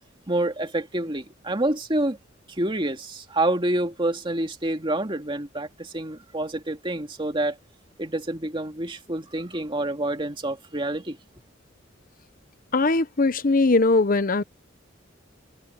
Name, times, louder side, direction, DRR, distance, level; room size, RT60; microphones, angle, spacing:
voice 1, 0.3-2.2 2.6-7.6 8.0-11.2, right 1 dB, 25° right, 2.2 m, -27 dB
voice 2, 12.7-14.4, left 3 dB, 45° left, 0.9 m, -20 dB
head